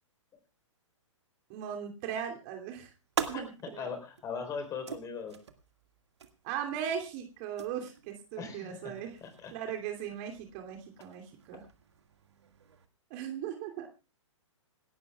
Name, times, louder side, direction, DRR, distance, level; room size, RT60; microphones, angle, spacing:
voice 1, 1.5-2.9 3.3-3.9 6.4-9.2 9.5-11.6 13.1-13.9, right 8 dB, 35° right, 3 dB, 2.8 m, -38 dB
sound 1, 2.4-12.9, right 7 dB, 60° right, 2.0 m, -45 dB
voice 2, 3.3-5.4 8.4-8.9 9.2-9.5, left 6 dB, 20° left, 8 dB, 4.0 m, -40 dB
27.0 x 12.5 x 2.4 m, 0.33 s
figure-of-eight pair, 115°, 16 cm